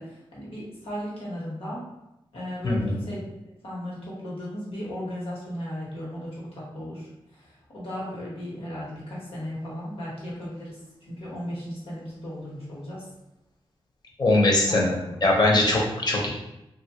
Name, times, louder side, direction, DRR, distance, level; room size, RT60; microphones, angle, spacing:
voice 1, 0.0-1.8 2.3-3.2 3.6-10.8 11.1-13.1 14.7-15.1, equal, 80° left, -6 dB, 1.2 m, -36 dB
voice 2, 14.2-16.3, left 2 dB, 45° left, -2 dB, 0.7 m, -21 dB
3.0 x 2.4 x 2.8 m, 0.91 s
wide cardioid pair, 105°, 10 cm